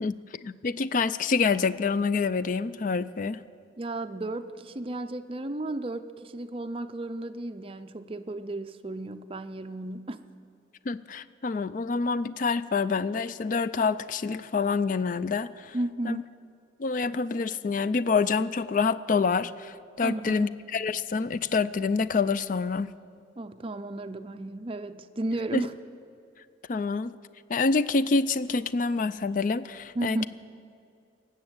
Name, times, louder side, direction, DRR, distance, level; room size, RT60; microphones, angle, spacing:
voice 1, 0.0-3.4 10.9-15.7 16.1-16.2 16.8-22.9 25.5-25.7 26.7-27.1 27.5-30.3, left 4 dB, 45° left, 16 dB, 0.4 m, -27 dB
voice 2, 3.8-10.2 15.7-16.3 20.0-20.5 23.4-25.7 29.9-30.3, right 1 dB, 30° right, 9 dB, 0.5 m, -34 dB
18.5 x 7.5 x 8.0 m, 2.5 s
head